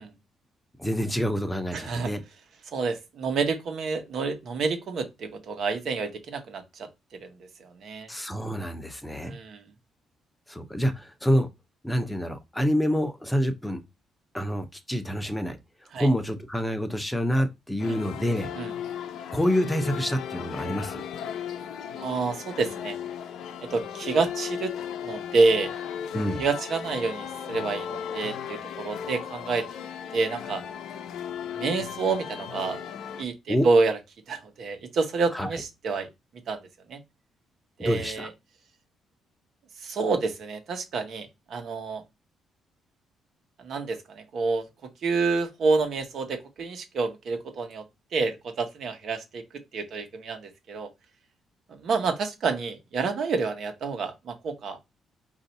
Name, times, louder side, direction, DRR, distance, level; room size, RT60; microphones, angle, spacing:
voice 1, 0.8-2.2 8.1-9.4 10.5-11.5 11.8-13.8 14.3-15.6 16.0-18.5 19.3-21.0 26.1-26.4 33.5-33.7 35.3-35.5 37.8-38.3, equal, 5° left, 0.8 m, -27 dB
voice 2, 1.7-2.1 2.7-6.9 7.2-7.3 7.6-8.1 9.2-9.7 15.9-16.1 17.9-18.0 18.5-18.7 22.0-23.0 23.7-24.7 25.0-25.7 26.4-29.7 30.1-30.6 31.5-32.8 33.2-34.0 34.3-36.1 36.5-36.6 36.9-37.0 37.8-38.3 39.8-42.0 43.6-44.7 45.0-47.8 48.1-49.4 49.7-50.9 51.7-54.8, right 4 dB, 65° right, 1.1 m, -28 dB
sound 1, 17.8-33.2, left 8 dB, 80° left, 0.6 m, -36 dB
4.4 x 2.7 x 4.0 m
cardioid pair, 90°, 0 cm